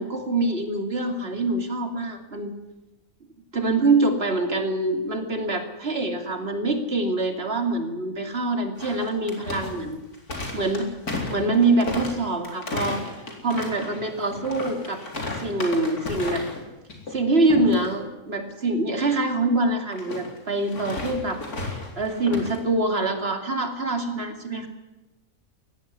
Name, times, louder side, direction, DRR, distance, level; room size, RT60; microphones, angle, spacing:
voice 1, 0.0-2.5 3.5-10.0 10.5-10.9 11.3-13.0 13.4-15.0 15.4-16.4 17.1-21.4 22.0-24.7, right 2 dB, 45° right, 5 dB, 2.9 m, -24 dB
sound 1, 8.8-16.6 16.9-17.2 17.5-17.9 19.9-22.6, left 2 dB, 90° left, 4.4 m, -33 dB
20.0 x 15.5 x 9.9 m, 1.1 s
omnidirectional pair, 1.5 m